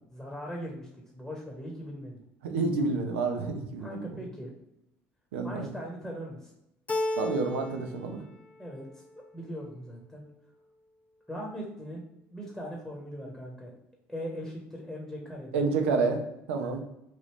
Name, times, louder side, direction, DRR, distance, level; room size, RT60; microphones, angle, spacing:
voice 1, 0.1-2.2 3.8-4.5 5.4-6.5 8.6-8.9 9.3-10.2 11.3-12.0 12.3-13.7 14.1-15.6 16.6-16.8, equal, 5° left, -2 dB, 1.0 m, -40 dB
voice 2, 2.4-4.2 5.3-5.7 7.1-8.2 15.5-16.2 16.5-16.8, right 4 dB, 90° right, 4 dB, 0.5 m, -29 dB
Keyboard (musical), 6.9-8.0 8.3-9.1, left 2 dB, 20° left, 0.3 m, -33 dB
3.1 x 2.5 x 3.1 m, 0.84 s
hypercardioid pair, 70°, 6 cm